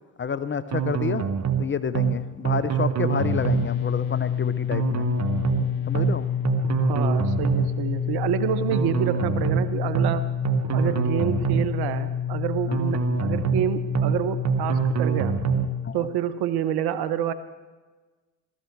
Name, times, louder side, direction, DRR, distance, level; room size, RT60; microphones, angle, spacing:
voice 1, 0.2-1.3 1.6-5.1 5.9-6.3 10.9-11.0 12.7-12.8 15.8-16.1, left 6 dB, 30° left, 14 dB, 0.7 m, -29 dB
sound 1, 0.7-1.6 1.9-2.2 2.4-3.7 4.7-5.6 5.9-6.2 6.4-7.7 8.7-9.6 9.9-10.2 10.4-11.7 12.7-13.6 13.9-14.2 14.4-15.7, right 8 dB, 40° right, 1.3 m, -25 dB
sound 2, 3.1-15.9, left 9 dB, 60° left, 0.8 m, -28 dB
voice 2, 6.8-10.3 10.7-15.4 15.9-17.3, right 10 dB, 65° right, 12 dB, 1.1 m, -28 dB
17.5 x 13.5 x 4.7 m, 1.3 s
hypercardioid pair, 60°, 41 cm